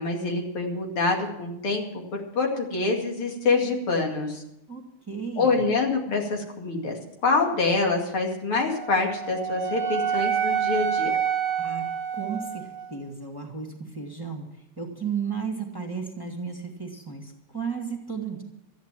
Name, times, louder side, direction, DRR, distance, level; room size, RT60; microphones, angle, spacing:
voice 1, 0.0-1.8 2.1-4.4 5.4-7.0 7.2-11.2, left 3 dB, 85° left, 1 dB, 3.3 m, -25 dB
voice 2, 4.7-5.6 11.6-11.9 12.1-14.5 14.8-18.4, right 6 dB, 10° right, 1 dB, 1.8 m, -34 dB
Wind instrument woodwind instrument, 8.7-12.9, right 8 dB, 75° right, 1.8 m, -27 dB
13.5 x 10.5 x 7.4 m, 0.81 s
omnidirectional pair, 2.3 m